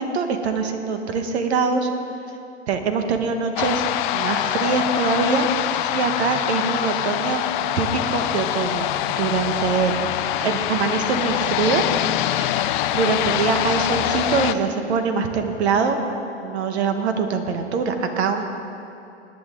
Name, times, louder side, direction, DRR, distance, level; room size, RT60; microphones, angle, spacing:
voice 1, 0.0-1.9 2.7-3.8 4.1-5.5 5.9-7.4 7.7-8.8 9.2-9.9 10.4-11.8 12.4-12.7 12.9-16.0 16.4-18.4, right 5 dB, 70° right, 6 dB, 1.5 m, -23 dB
sound 1, 3.6-14.5, left 12 dB, 45° left, 0.5 m, -24 dB
19.5 x 9.0 x 3.8 m, 2.7 s
hypercardioid pair, 125°, 34 cm